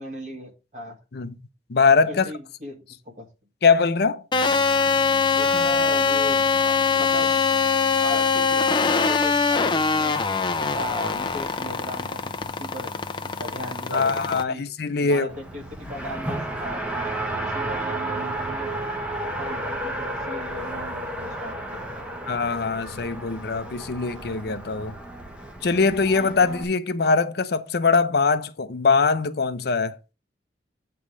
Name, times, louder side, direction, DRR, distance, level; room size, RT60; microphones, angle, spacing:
voice 1, 0.0-1.0 2.1-3.3 5.3-7.5 8.0-10.2 10.6-14.6 15.0-18.8 19.2-22.1, equal, 45° right, 2.3 m, -37 dB
voice 2, 1.7-2.3 3.6-4.2 13.9-15.3 22.3-24.9 25.6-30.0, left 4 dB, 65° left, 0.7 m, -22 dB
sound 1, 4.3-14.4, left 5 dB, 25° left, 0.6 m, -23 dB
Race car auto racing, 15.3-26.6, right 1 dB, 5° right, 1.1 m, -32 dB
8.4 x 3.5 x 6.2 m
head